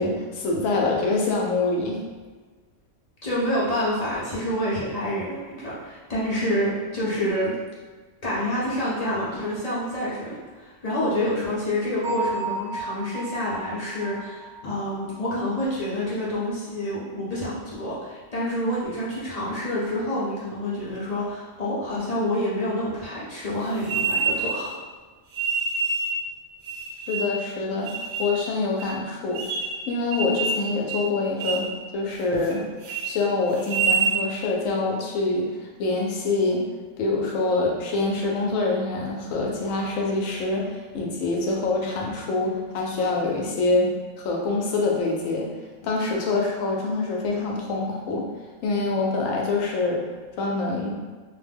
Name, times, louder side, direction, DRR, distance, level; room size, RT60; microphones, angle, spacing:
voice 1, 0.0-2.0 27.1-29.4 29.9-32.6 33.0-35.5 35.8-36.6 37.0-45.5 45.8-48.3 48.6-50.0 50.4-51.0, left 3 dB, 90° left, -1 dB, 1.0 m, -25 dB
voice 2, 3.2-7.5 8.2-24.7, left 1 dB, 45° left, -8 dB, 0.5 m, -28 dB
Bell, 12.0-15.7, right 3 dB, 50° right, 0.3 m, -34 dB
sound 1, 23.8-24.7 25.3-26.2 26.6-27.4 27.9-28.3 28.8-28.9 29.3-29.8 30.1-30.6 30.9-31.1 31.4-31.7 32.1-32.5 32.8-33.1 33.6-34.1, right 4 dB, 75° right, 0.9 m, -26 dB
2.5 x 2.1 x 3.3 m, 1.4 s
omnidirectional pair, 1.3 m